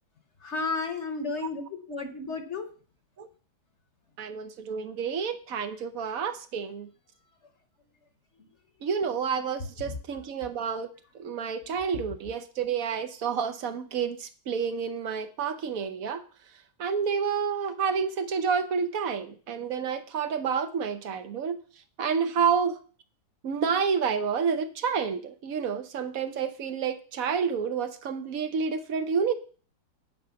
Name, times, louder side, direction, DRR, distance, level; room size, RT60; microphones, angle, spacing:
voice 1, 0.4-2.7 9.8-9.9, left 3 dB, 45° left, 7 dB, 1.2 m, -33 dB
voice 2, 4.2-6.9 8.8-10.9 11.1-16.2 16.8-21.6 22.0-22.8 23.4-29.3, right 6 dB, 60° right, 10 dB, 1.2 m, -29 dB
9.5 x 5.1 x 6.9 m, 0.41 s
omnidirectional pair, 1.8 m